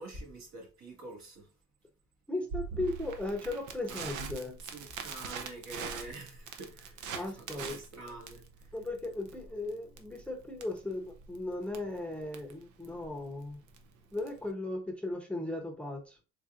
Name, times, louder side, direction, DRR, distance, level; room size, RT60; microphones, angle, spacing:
voice 1, 0.0-1.5 3.9-4.1 4.6-8.7, right 2 dB, 65° right, 1.7 m, -47 dB
voice 2, 2.3-4.6 7.1-7.7 8.7-13.6 14.1-16.2, left 2 dB, 5° left, 0.7 m, -37 dB
Crackle, 2.5-14.5, right 6 dB, 85° right, 0.7 m, -43 dB
4.0 x 3.5 x 2.4 m
cardioid pair, 90°, 30 cm